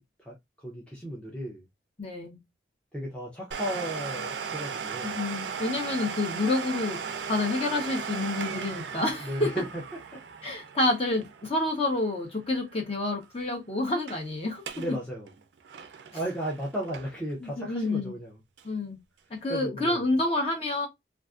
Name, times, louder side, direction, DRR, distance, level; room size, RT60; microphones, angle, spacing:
voice 1, 0.0-1.7 2.9-5.1 9.2-9.8 10.1-10.2 14.8-15.3 16.1-18.4 19.5-20.1, equal, 5° left, 0.5 m, -35 dB
voice 2, 2.0-2.4 5.0-9.5 10.4-14.6 17.4-18.1 18.6-19.0 19.3-20.9, left 2 dB, 35° left, 0.8 m, -29 dB
Domestic sounds home sounds, 3.5-12.9 13.2-13.3 13.9-14.2 14.5-14.9 15.3-17.3 17.8-17.9 18.6-18.7, right 6 dB, 75° right, 0.4 m, -37 dB
2.4 x 2.4 x 2.3 m
head